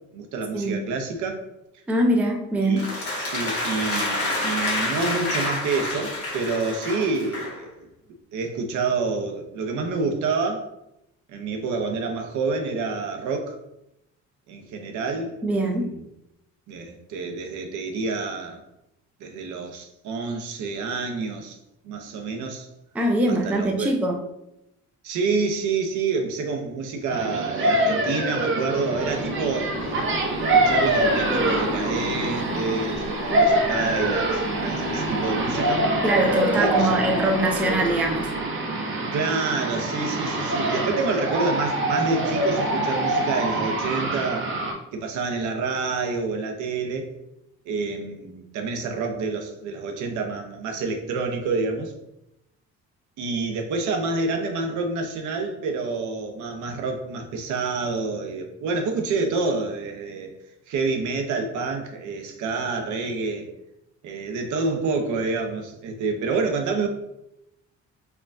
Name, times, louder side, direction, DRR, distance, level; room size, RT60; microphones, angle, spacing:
voice 1, 0.1-1.4 2.6-7.9 8.3-10.7 11.3-13.6 14.5-16.1 16.7-18.6 19.2-21.6 21.8-22.7 23.3-23.9 25.0-29.8 30.4-35.9 36.6-36.9 39.1-44.5 44.9-47.1 47.7-51.9 53.2-60.4 60.7-63.5 64.0-66.9, right 4 dB, 80° right, 5 dB, 0.6 m, -28 dB
voice 2, 1.9-2.8 15.4-15.9 22.9-24.2 36.0-38.3, right 1 dB, 5° right, 2 dB, 0.3 m, -22 dB
sound 1, 2.8-7.6, left 2 dB, 55° left, 1.2 m, -28 dB
sound 2, 27.1-44.7, right 1 dB, 45° right, 0.7 m, -25 dB
sound 3, 28.9-38.4, left 4 dB, 85° left, 0.7 m, -37 dB
4.4 x 2.2 x 2.5 m, 0.84 s
cardioid pair, 125°, 29 cm